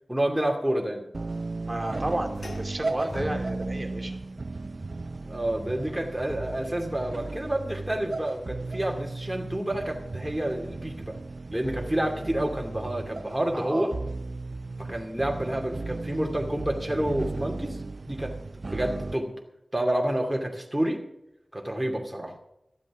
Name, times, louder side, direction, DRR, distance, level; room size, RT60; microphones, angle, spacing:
voice 1, 0.1-1.1 5.2-11.2 11.5-13.9 14.8-18.4 18.7-19.4 19.7-21.0 21.5-22.3, right 1 dB, 10° right, 1 dB, 2.6 m, -29 dB
sound 1, 1.1-19.1, right 3 dB, 60° right, 0.4 m, -35 dB
voice 2, 1.7-4.2 13.5-13.9, right 1 dB, 30° right, 2 dB, 2.6 m, -32 dB
sound 2, 2.3-7.3, left 2 dB, 70° left, 1.6 m, -44 dB
17.5 x 13.0 x 3.7 m, 0.84 s
wide cardioid pair, 50°, 0 cm